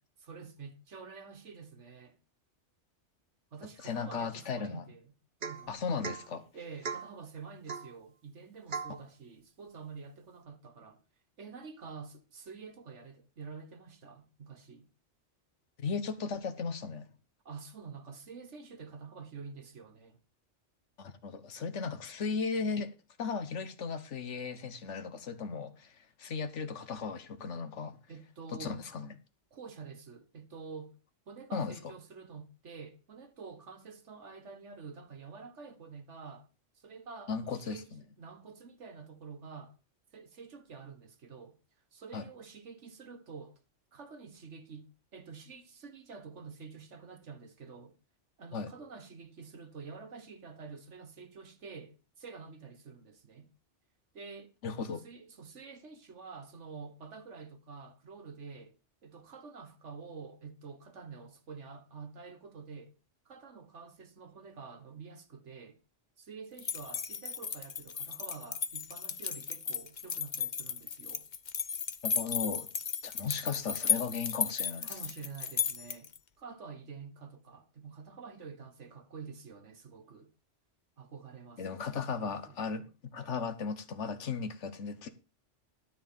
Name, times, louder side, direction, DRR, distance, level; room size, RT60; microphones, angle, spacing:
voice 1, 0.2-2.2 3.5-5.1 5.4-5.8 6.5-11.0 11.4-14.9 17.5-20.2 28.1-28.8 29.5-31.0 31.3-36.5 36.8-39.8 40.1-41.6 41.9-43.6 43.9-48.0 48.4-53.5 54.1-54.5 55.0-58.7 59.0-63.0 63.3-65.8 66.2-71.3 74.8-76.1 76.4-80.3 81.0-81.8 82.1-82.6, right 5 dB, 75° right, 1.8 m, -48 dB
voice 2, 3.8-4.9 5.7-6.4 15.8-17.1 21.0-22.9 23.2-28.0 28.5-29.1 31.5-31.7 37.3-38.0 42.1-42.2 48.5-48.7 54.6-55.0 72.0-72.7 73.0-75.0 81.6-85.1, left 5 dB, 75° left, 1.5 m, -36 dB
Domestic sounds home sounds / Chink clink / Drip, 5.4-5.7 6.0-6.3 6.8-7.1 7.7-7.9 8.7-9.0, right 5 dB, 45° right, 1.1 m, -38 dB
sound 1, 66.6-76.2, left 7 dB, 45° left, 0.8 m, -35 dB
13.0 x 4.7 x 7.4 m
omnidirectional pair, 1.2 m